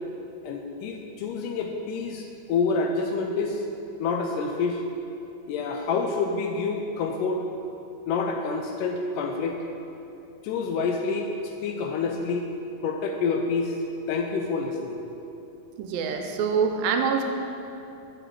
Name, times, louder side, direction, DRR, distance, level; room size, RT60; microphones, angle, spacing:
voice 1, 0.4-3.6 4.0-4.8 5.5-7.5 8.1-9.6 10.4-12.5 12.8-13.8 14.1-15.1, left 4 dB, 80° left, 3 dB, 2.0 m, -28 dB
voice 2, 15.8-17.2, right 6 dB, 85° right, 4 dB, 2.4 m, -25 dB
9.0 x 6.2 x 4.6 m, 2.8 s
omnidirectional pair, 4.1 m